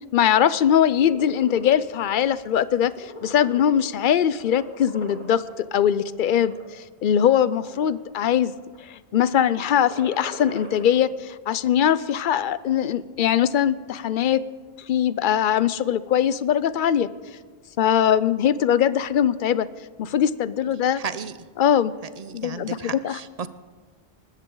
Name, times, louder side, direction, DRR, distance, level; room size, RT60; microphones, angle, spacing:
voice 1, 0.1-8.5 8.8-14.4 14.9-17.1 17.8-19.7 20.0-21.0 21.6-21.9 22.3-22.8 23.0-23.2, left 9 dB, 60° left, 17 dB, 0.6 m, -21 dB
sound 1, 0.8-1.8 2.2-2.5 2.8-4.0 4.4-5.5 6.1-6.6 7.2-8.0 8.3-8.8 9.6-10.9, left 1 dB, 45° left, 3.0 m, -40 dB
voice 2, 20.9-21.4 22.2-23.5, right 6 dB, 50° right, 14 dB, 0.5 m, -34 dB
20.0 x 15.0 x 3.9 m, 1.4 s
omnidirectional pair, 1.1 m